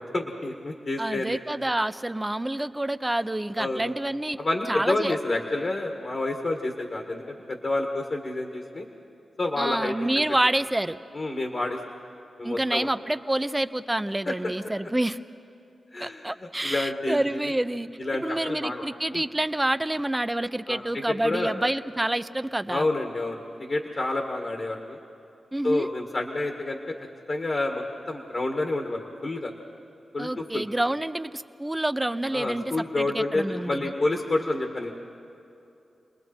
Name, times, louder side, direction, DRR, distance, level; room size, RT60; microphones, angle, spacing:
voice 1, 0.0-1.4 3.6-3.9 4.4-7.2 7.5-8.8 9.4-9.9 11.1-11.8 12.4-12.9 14.2-14.3 15.9-17.5 18.0-18.8 19.1-19.3 20.7-21.5 22.7-25.0 25.6-26.8 27.3-29.5 30.1-30.6 32.3-34.9, left 2 dB, 55° left, 3 dB, 1.8 m, -29 dB
voice 2, 1.0-4.4 4.7-5.1 9.6-11.0 12.4-15.2 16.0-17.9 18.2-22.8 25.5-25.9 30.2-33.9, right 1 dB, 15° right, 11 dB, 0.7 m, -28 dB
29.5 x 20.0 x 4.5 m, 2.7 s
cardioid pair, 45°, 0 cm